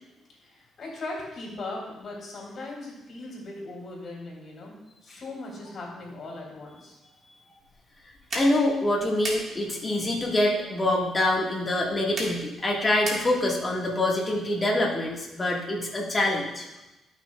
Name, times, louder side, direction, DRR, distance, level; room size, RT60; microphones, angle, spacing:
voice 1, 0.4-4.7 5.0-6.9, left 2 dB, 50° left, -3 dB, 3.0 m, -39 dB
sound 1, 7.6-13.7, right 2 dB, 45° right, 1.8 m, -39 dB
voice 2, 8.3-16.7, left 1 dB, 25° left, -2 dB, 1.9 m, -25 dB
11.5 x 6.2 x 2.4 m, 0.99 s
cardioid pair, 90°, 0 cm